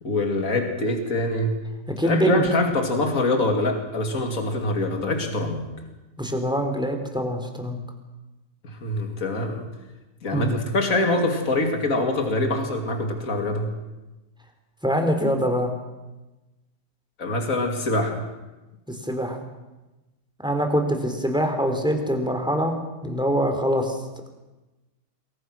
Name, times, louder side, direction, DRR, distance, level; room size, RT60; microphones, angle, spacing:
voice 1, 0.0-1.6 2.0-5.7 8.6-9.7 10.2-13.7 17.2-18.3, left 2 dB, 65° left, 4 dB, 3.1 m, -24 dB
voice 2, 2.0-2.5 6.2-7.8 10.3-10.6 14.8-15.7 18.9-19.4 20.4-22.7 23.0-24.0, equal, 5° right, 4 dB, 3.7 m, -24 dB
27.0 x 23.0 x 6.3 m, 1.1 s
omnidirectional pair, 1.6 m